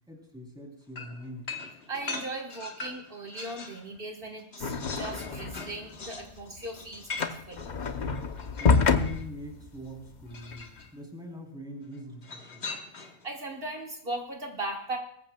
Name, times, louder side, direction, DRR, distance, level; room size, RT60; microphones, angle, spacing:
voice 1, 0.1-1.5 8.6-12.7, equal, 5° right, 0 dB, 3.2 m, -43 dB
sound 1, 1.0-3.8 4.2-9.3 10.3-10.9 12.2-13.3, left 3 dB, 75° left, 1.6 m, -41 dB
voice 2, 1.9-7.7 13.2-15.0, right 2 dB, 65° right, 1 dB, 1.6 m, -38 dB
sound 2, 4.6-5.8 6.1-10.6, left 5 dB, 50° left, 0.9 m, -28 dB
23.0 x 14.5 x 2.2 m, 0.67 s
omnidirectional pair, 1.1 m